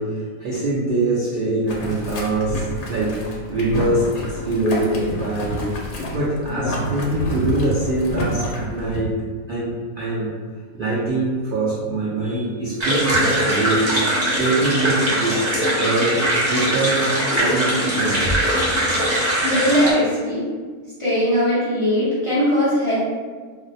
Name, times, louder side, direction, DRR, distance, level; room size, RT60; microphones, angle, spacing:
voice 1, 0.0-5.6 6.1-9.1 9.5-10.3 10.7-13.9 14.3-16.2 16.5-17.1 17.4-18.4, right 2 dB, 85° right, -7 dB, 0.4 m, -23 dB
Boiling, 1.7-9.0, equal, 75° left, 1.0 m, -28 dB
sound 1, 12.8-19.9, right 1 dB, 35° right, 0.8 m, -21 dB
voice 2, 19.4-20.4 21.0-23.0, equal, 40° left, -10 dB, 0.4 m, -19 dB
2.5 x 2.1 x 3.9 m, 1.5 s
omnidirectional pair, 1.6 m